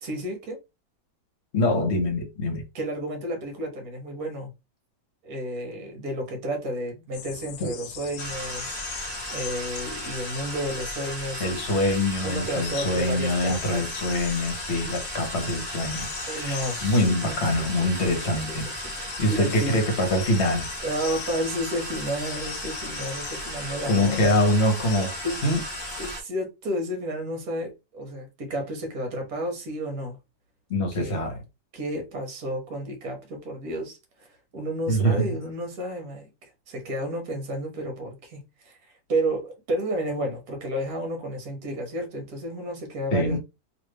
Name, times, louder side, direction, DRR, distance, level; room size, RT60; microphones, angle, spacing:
voice 1, 0.0-0.6 2.7-4.5 5.2-8.8 9.3-11.6 12.2-14.0 16.3-17.1 17.6-18.3 18.6-18.9 19.3-19.8 20.8-24.4 25.2-25.4 26.0-30.2 31.0-31.2 31.7-34.3 34.5-36.3 36.7-38.8 39.1-43.4, right 1 dB, 60° right, 1.5 m, -31 dB
voice 2, 1.5-2.6 7.6-7.7 11.4-18.7 19.2-20.7 23.9-25.2 25.4-25.6 30.7-31.4 34.9-35.3 43.1-43.4, left 1 dB, 45° left, 1.0 m, -24 dB
sound 1, 7.1-26.1, left 10 dB, 80° left, 1.2 m, -39 dB
sound 2, 8.2-26.2, right 1 dB, 20° right, 0.7 m, -36 dB
3.3 x 2.8 x 3.2 m
omnidirectional pair, 1.9 m